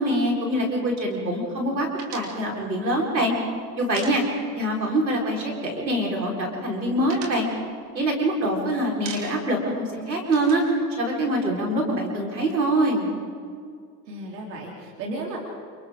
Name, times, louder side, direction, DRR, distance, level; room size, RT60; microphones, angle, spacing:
voice 1, 0.0-3.3 3.8-4.2 4.6-7.5 7.9-10.6 11.0-13.1, right 1 dB, 90° right, -1 dB, 4.7 m, -24 dB
sound 1, 2.0-4.8 5.0-5.2 5.5-6.2 6.5-8.5 8.8-9.6 9.9-11.7, right 4 dB, 50° right, 7.0 m, -41 dB
voice 2, 14.1-15.4, right 2 dB, 70° right, -2 dB, 3.7 m, -34 dB
29.5 x 29.0 x 3.8 m, 2.2 s
figure-of-eight pair, 80°, 50 cm